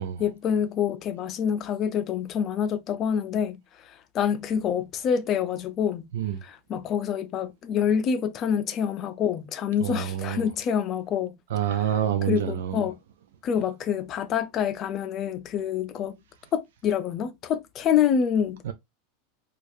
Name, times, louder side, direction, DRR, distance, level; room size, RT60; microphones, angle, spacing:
voice 1, 0.2-3.6 3.8-6.0 6.4-11.4 12.3-13.0 13.4-16.2 16.5-18.6, left 8 dB, 30° left, 0.5 m, -26 dB
voice 2, 9.8-10.5 11.5-12.8 18.6-18.7, right 10 dB, 80° right, 0.5 m, -27 dB
4.7 x 2.4 x 2.6 m
supercardioid pair, 150°, 0 cm